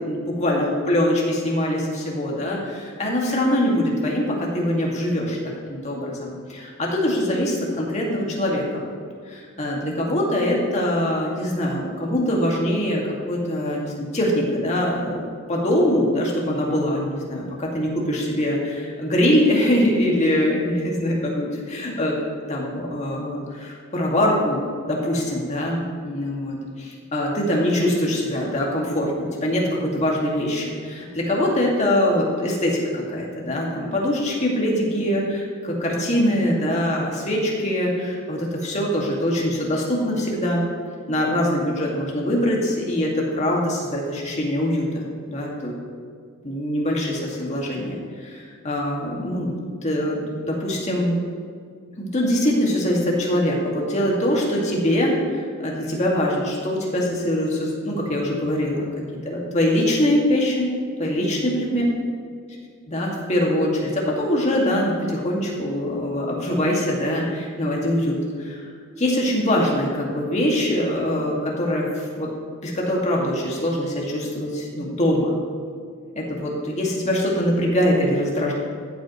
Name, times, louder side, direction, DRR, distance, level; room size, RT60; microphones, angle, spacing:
voice 1, 0.0-5.4 5.7-8.8 9.3-22.2 22.5-40.6 41.1-45.8 46.4-49.5 49.8-51.2 52.0-58.9 59.3-61.8 62.9-68.6 69.0-72.3 72.6-75.4 76.2-78.5, left 1 dB, 35° left, -2 dB, 2.0 m, -23 dB
14.0 x 8.2 x 3.1 m, 2.1 s
head